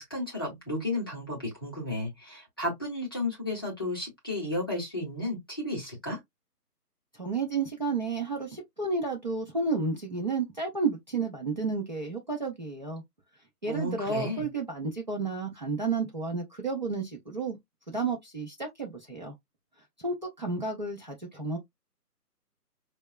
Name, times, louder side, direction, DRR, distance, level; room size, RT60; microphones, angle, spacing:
voice 1, 0.0-6.2 13.7-14.5, left 1 dB, 15° left, 0.7 m, -33 dB
voice 2, 7.2-13.0 13.6-17.6 17.9-19.3 20.0-21.6, right 4 dB, 30° right, 0.7 m, -31 dB
5.1 x 2.2 x 2.2 m
figure-of-eight pair, 160°, 48 cm